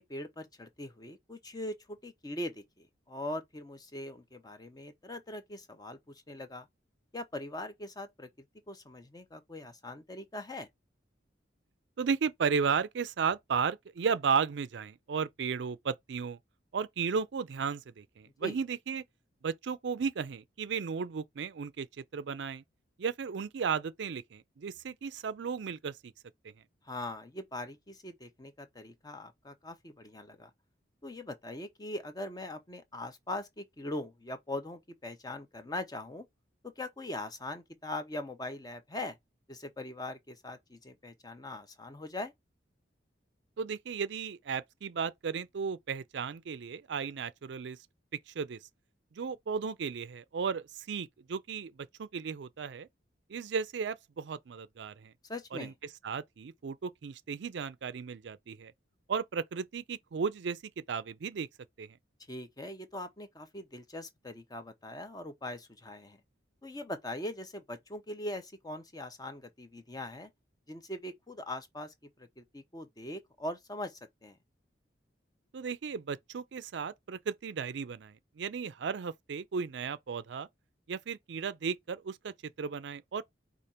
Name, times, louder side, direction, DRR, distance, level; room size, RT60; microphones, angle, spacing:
voice 1, 0.0-6.7 7.1-8.3 8.7-10.7 18.4-18.6 26.8-30.5 31.0-36.3 36.6-39.2 39.5-42.3 55.2-55.7 62.3-66.2 66.6-70.3 70.7-74.4, left 1 dB, 20° left, 0.7 m, -41 dB
voice 2, 12.0-16.4 16.7-19.0 19.4-22.6 23.0-26.1 26.4-26.5 43.6-47.8 48.3-48.6 49.1-52.9 53.3-55.1 55.5-55.7 56.0-58.7 59.1-61.5 61.8-62.0 75.5-80.5 80.9-83.2, right 6 dB, 65° right, 0.4 m, -34 dB
5.0 x 2.5 x 4.2 m
head